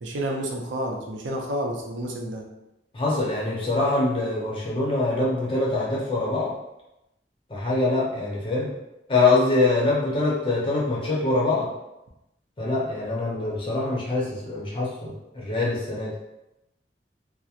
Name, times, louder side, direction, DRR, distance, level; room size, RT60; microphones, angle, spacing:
voice 1, 0.0-2.4, right 1 dB, 90° right, 0 dB, 0.5 m, -30 dB
voice 2, 2.9-6.6 7.5-8.7 9.1-11.7 12.6-16.1, left 2 dB, 30° left, -5 dB, 0.7 m, -24 dB
2.8 x 2.0 x 2.4 m, 0.91 s
head